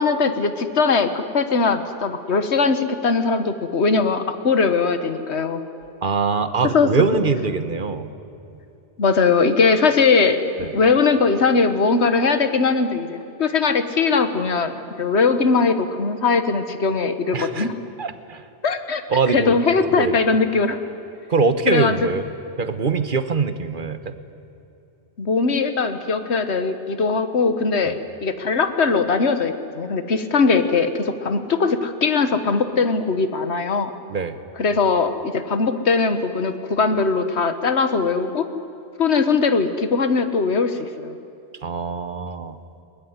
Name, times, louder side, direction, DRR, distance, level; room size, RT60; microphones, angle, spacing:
voice 1, 0.0-5.6 6.7-6.9 9.0-17.7 18.6-19.0 19.3-20.8 21.7-21.9 25.2-27.9 28.2-33.9 34.6-38.5 39.0-41.2, left 4 dB, 75° left, 10 dB, 1.7 m, -20 dB
voice 2, 6.0-8.1 10.6-10.7 17.3-17.7 18.0-18.4 19.1-19.6 19.9-20.2 21.3-22.3 22.6-24.1 27.9-28.0 34.1-34.4 41.6-42.6, right 4 dB, 50° right, 11 dB, 1.4 m, -23 dB
22.0 x 20.5 x 9.7 m, 2.9 s
omnidirectional pair, 1.1 m